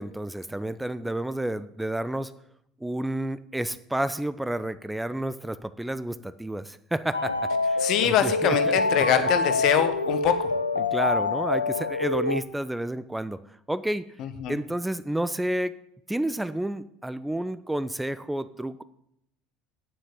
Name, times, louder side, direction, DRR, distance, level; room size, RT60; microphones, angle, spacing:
voice 1, 0.0-2.3 2.8-9.3 10.8-13.4 13.7-14.1 14.5-15.8 16.1-18.8, right 1 dB, 5° right, 14 dB, 0.6 m, -30 dB
sound 1, 7.1-12.4, left 3 dB, 85° left, 0.6 m, -26 dB
voice 2, 7.8-10.5 14.2-14.6, left 10 dB, 50° left, 10 dB, 1.3 m, -24 dB
9.3 x 7.6 x 8.7 m, 0.78 s
figure-of-eight pair, 65°, 0 cm